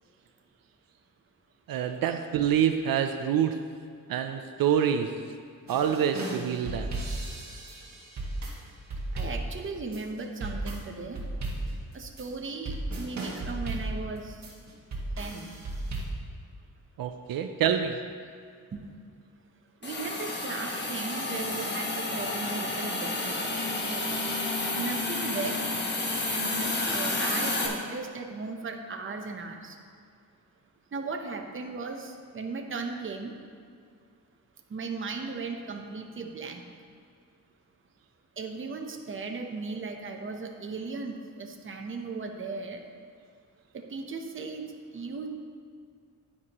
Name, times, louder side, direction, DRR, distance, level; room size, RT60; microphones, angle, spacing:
voice 1, 1.7-3.5 4.1-5.1 5.7-6.9 17.0-18.0, right 9 dB, 80° right, 6 dB, 0.6 m, -26 dB
sound 1, 5.7-16.1, right 2 dB, 55° right, 1.6 m, -35 dB
voice 2, 9.1-11.2 11.9-14.4 15.2-15.5 18.7-18.9 19.8-24.0 24.8-25.6 26.3-29.8 30.9-33.3 34.7-36.6 38.4-42.8 43.7-44.6 44.9-45.3, right 4 dB, 35° right, 3 dB, 0.8 m, -37 dB
Hiss, 19.8-27.7, left 2 dB, 30° left, 1.3 m, -30 dB
9.7 x 9.7 x 3.0 m, 2.3 s
wide cardioid pair, 140°, 34 cm